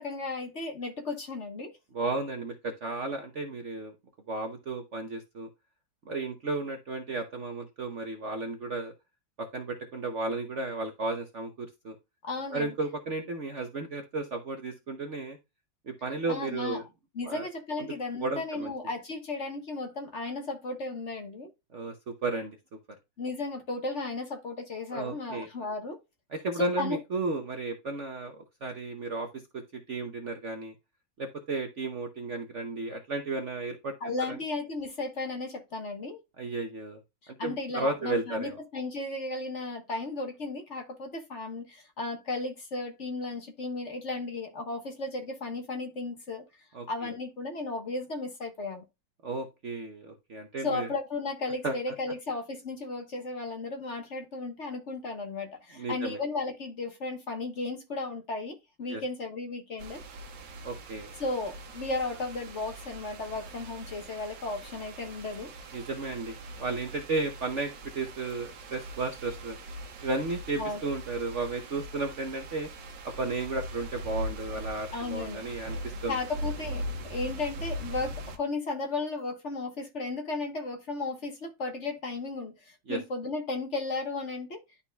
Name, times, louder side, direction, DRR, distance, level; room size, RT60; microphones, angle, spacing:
voice 1, 0.0-1.8 12.2-12.7 16.3-16.8 17.1-21.5 23.2-26.0 26.6-27.0 34.0-36.2 37.2-46.4 46.9-48.8 50.6-60.0 61.2-65.5 70.6-70.8 74.9-75.6 76.1-84.6, left 3 dB, 40° left, 1.4 m, -35 dB
voice 2, 1.9-3.9 4.3-5.5 6.1-8.9 9.4-12.0 12.5-15.4 15.9-16.8 17.2-17.5 17.8-17.9 18.2-18.7 21.7-21.9 22.2-22.6 24.9-25.5 26.3-28.4 28.6-29.3 29.5-29.6 29.9-30.7 31.2-33.9 34.3-34.4 36.4-37.0 37.4-38.5 46.7-46.9 49.2-50.9 51.6-51.7 55.8-56.2 58.9-59.0 60.6-61.1 65.7-69.6 70.0-72.7 73.0-76.2 82.9-83.0, right 3 dB, 50° right, 0.9 m, -33 dB
sound 1, 59.8-78.4, right 1 dB, 70° right, 1.7 m, -41 dB
11.5 x 4.1 x 2.2 m
omnidirectional pair, 2.0 m